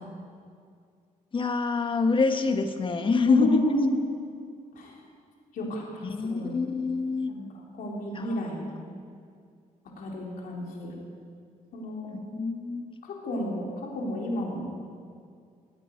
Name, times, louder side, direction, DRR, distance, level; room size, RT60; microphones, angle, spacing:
voice 1, 1.3-3.6 6.0-7.3 8.1-8.9 12.1-12.9, left 4 dB, 35° left, 7 dB, 1.3 m, -26 dB
voice 2, 3.3-4.0 4.7-5.0 5.5-6.5 7.3-8.8 10.0-11.0 11.7-12.1 13.0-14.7, left 1 dB, 75° left, -2 dB, 3.5 m, -31 dB
16.5 x 9.0 x 9.2 m, 2.2 s
cardioid pair, 110°, 14 cm